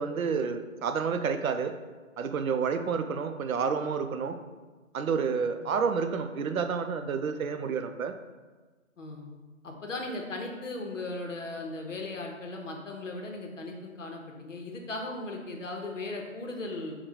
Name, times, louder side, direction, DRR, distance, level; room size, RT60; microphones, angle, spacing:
voice 1, 0.0-1.7 2.2-4.4 4.9-8.1, right 6 dB, 85° right, 8 dB, 0.5 m, -29 dB
voice 2, 9.0-9.3 9.6-17.0, left 2 dB, 65° left, 2 dB, 0.8 m, -37 dB
3.9 x 2.2 x 4.4 m, 1.3 s
figure-of-eight pair, 170°, 40 cm